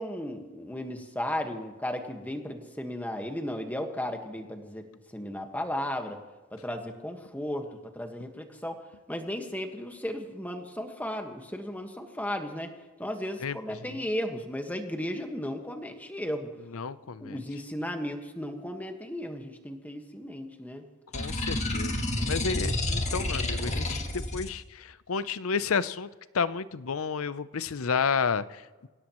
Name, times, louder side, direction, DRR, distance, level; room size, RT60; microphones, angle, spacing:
voice 1, 0.0-4.8 5.1-6.2 6.5-8.8 9.1-12.7 13.0-16.5 17.2-20.8, left 1 dB, 5° left, 5 dB, 1.5 m, -35 dB
voice 2, 16.7-17.4 21.1-26.1 26.3-28.9, left 5 dB, 70° left, 15 dB, 0.6 m, -31 dB
sound 1, 21.1-24.5, left 1 dB, 30° left, 1.9 m, -30 dB
26.0 x 17.0 x 3.1 m, 1.3 s
head